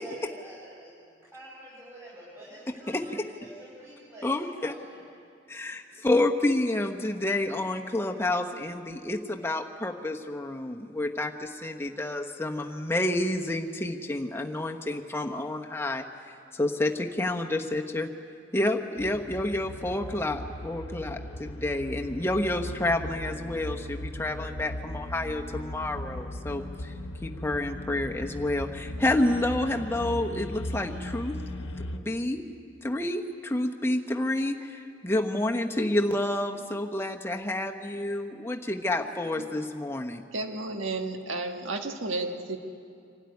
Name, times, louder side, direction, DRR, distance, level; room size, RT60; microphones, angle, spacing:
voice 1, 0.0-5.0, right 1 dB, 15° right, -8 dB, 4.7 m, -47 dB
voice 2, 2.9-3.2 4.2-4.7 5.5-16.1 16.5-18.1 18.5-26.9 27.2-31.4 31.9-32.4 32.8-40.2, left 1 dB, 15° left, 3 dB, 1.1 m, -29 dB
sound 1, 19.0-32.0, left 1 dB, 80° left, 1.1 m, -38 dB
voice 3, 40.3-42.6, right 2 dB, 85° right, 4 dB, 1.6 m, -32 dB
26.0 x 12.5 x 9.6 m, 2.4 s
head